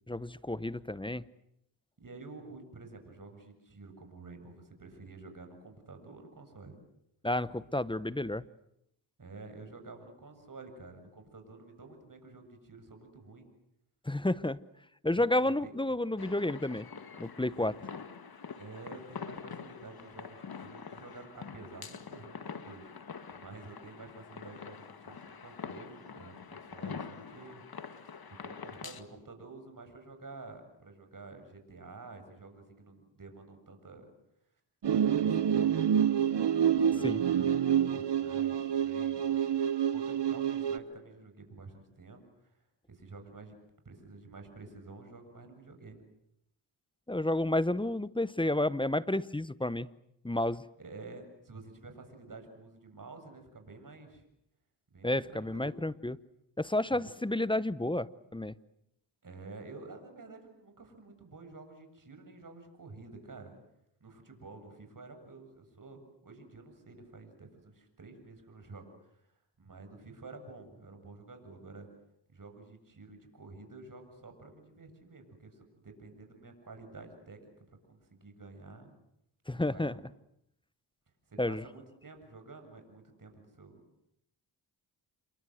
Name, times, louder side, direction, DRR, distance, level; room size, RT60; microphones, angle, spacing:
voice 1, 0.1-1.2 7.2-8.4 14.1-14.6 15.0-16.9 17.2-17.7 37.0-37.2 47.1-49.9 50.2-50.6 55.0-56.2 56.6-58.5 79.5-79.9 81.4-81.6, left 1 dB, 10° left, 17 dB, 0.9 m, -31 dB
voice 2, 2.0-6.8 9.2-13.5 15.1-15.7 17.6-17.7 18.6-27.6 28.3-34.1 34.9-35.8 36.7-37.5 37.8-39.6 39.9-42.5 42.9-43.6 43.8-46.0 50.8-54.2 54.9-55.7 56.9-57.0 59.2-63.5 64.0-69.2 69.6-71.9 72.3-78.9 79.5-80.1 81.3-83.8, right 3 dB, 40° right, 6 dB, 7.4 m, -50 dB
sound 1, 16.2-29.0, left 6 dB, 45° left, 2.1 m, -45 dB
sound 2, 34.8-40.8, right 9 dB, 55° right, 1.5 m, -27 dB
28.5 x 23.0 x 7.9 m, 0.78 s
cardioid pair, 55°, 50 cm